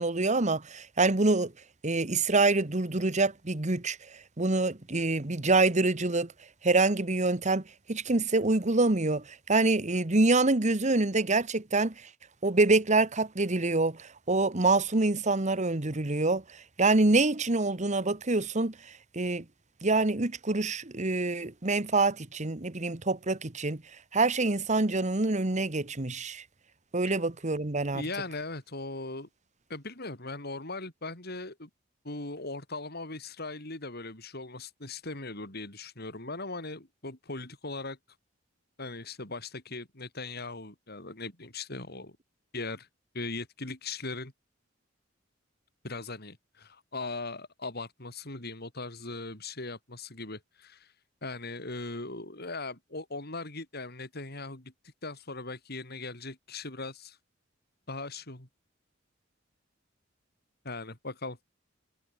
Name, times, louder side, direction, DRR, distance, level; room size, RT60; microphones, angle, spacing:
voice 1, 0.0-1.5 1.8-6.3 6.6-7.6 7.9-12.1 12.4-19.4 19.8-23.8 24.1-26.4 26.9-28.0, right 3 dB, 40° right, 1.4 m, -26 dB
voice 2, 27.9-29.3 29.7-31.7 32.0-38.0 38.8-42.2 42.5-42.9 43.1-44.3 45.8-50.9 51.2-54.7 55.0-57.2 57.9-58.5 60.6-61.4, left 3 dB, 55° left, 5.3 m, -39 dB
head